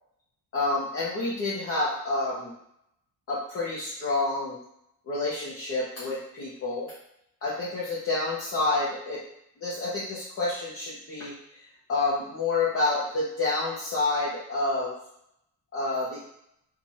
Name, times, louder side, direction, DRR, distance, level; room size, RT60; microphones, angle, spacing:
voice 1, 0.5-2.5 3.3-4.6 5.1-6.9 7.4-9.2 9.6-11.3 11.9-15.0 15.7-16.2, left 2 dB, 40° left, -7 dB, 1.1 m, -28 dB
4.7 x 2.7 x 4.2 m, 0.75 s
cardioid pair, 160°, 36 cm